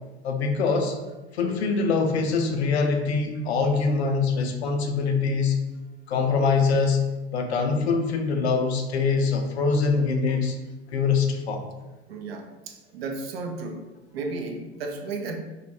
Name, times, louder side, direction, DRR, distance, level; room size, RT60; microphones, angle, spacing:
voice 1, 0.2-1.0 1.3-5.6 6.1-7.0 7.3-10.5 10.9-11.7, left 4 dB, 70° left, 4 dB, 0.5 m, -23 dB
voice 2, 12.1-13.8 14.1-15.4, right 3 dB, 60° right, 4 dB, 0.5 m, -34 dB
2.3 x 2.1 x 2.9 m, 1.1 s
figure-of-eight pair, 75°, 34 cm